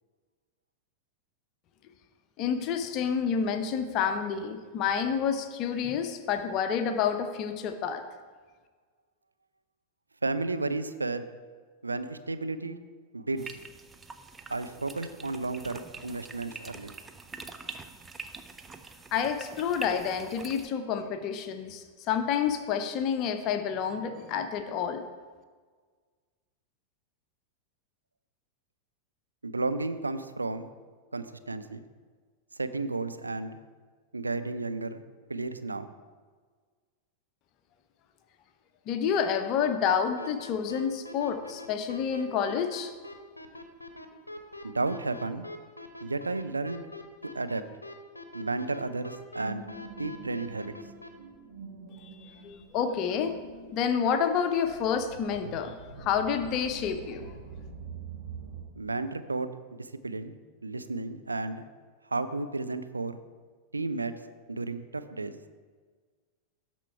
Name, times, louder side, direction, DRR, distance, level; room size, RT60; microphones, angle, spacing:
voice 1, 2.4-8.0 19.1-25.0 38.9-42.9 52.0-53.3 53.7-55.7 56.0-57.3, left 7 dB, 40° left, 8 dB, 0.7 m, -29 dB
voice 2, 10.2-11.2 11.8-12.8 13.1-13.5 14.5-16.9 29.4-30.7 31.1-31.8 32.6-33.6 34.1-35.0 35.3-35.9 44.6-45.5 46.0-46.8 47.3-47.6 48.3-49.6 50.0-50.7 58.8-60.4 60.6-61.6 62.1-63.2 63.7-64.1 64.5-65.3, right 3 dB, 80° right, 11 dB, 0.4 m, -33 dB
sound 1, 13.4-20.7, right 4 dB, 15° right, 0.5 m, -44 dB
sound 2, 40.2-51.1, left 3 dB, 85° left, 0.8 m, -43 dB
sound 3, 49.3-58.6, right 4 dB, 50° right, 1.9 m, -45 dB
12.5 x 4.5 x 4.6 m, 1.5 s
figure-of-eight pair, 90°, 0 cm